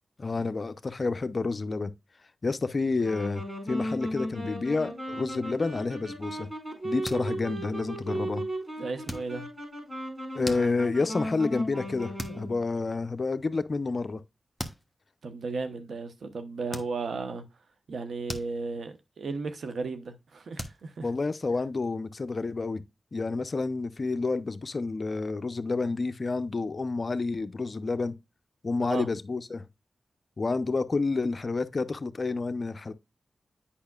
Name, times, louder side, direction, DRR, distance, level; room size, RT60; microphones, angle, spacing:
voice 1, 0.2-1.9 2.4-6.5 6.8-8.4 10.3-14.2 21.0-22.8 23.1-28.1 28.6-29.6 30.4-32.9, left 3 dB, 50° left, 0.6 m, -29 dB
Wind instrument woodwind instrument, 2.9-12.6, equal, 25° right, 4.8 m, -36 dB
sound 1, 6.9-7.7 8.0-8.3 9.0-9.7 10.2-11.1 11.6-11.9 12.1-12.5 12.9-13.0 14.1-14.2 14.6-14.9 15.6-15.8 16.7-17.3 17.7-19.0 19.3-19.6 19.9-20.0 20.6-21.9, equal, 5° right, 1.1 m, -41 dB
voice 2, 8.8-9.5 15.2-17.4 17.9-21.1 28.9-29.1, right 4 dB, 85° right, 0.9 m, -35 dB
8.6 x 5.7 x 2.3 m
cardioid pair, 55°, 0 cm